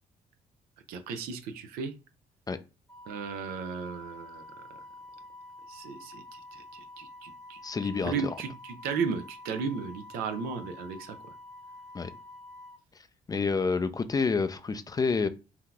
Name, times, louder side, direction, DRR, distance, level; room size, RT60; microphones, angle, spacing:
voice 1, 0.9-1.9 3.1-4.4 5.7-11.2, right 5 dB, 90° right, 7 dB, 0.5 m, -35 dB
Wind instrument woodwind instrument, 2.9-12.8, left 2 dB, 5° left, 0.9 m, -48 dB
voice 2, 7.6-8.4 11.9-12.1 12.9-15.3, left 4 dB, 25° left, 10 dB, 0.4 m, -29 dB
2.7 x 2.3 x 3.8 m, 0.31 s
cardioid pair, 85°, 15 cm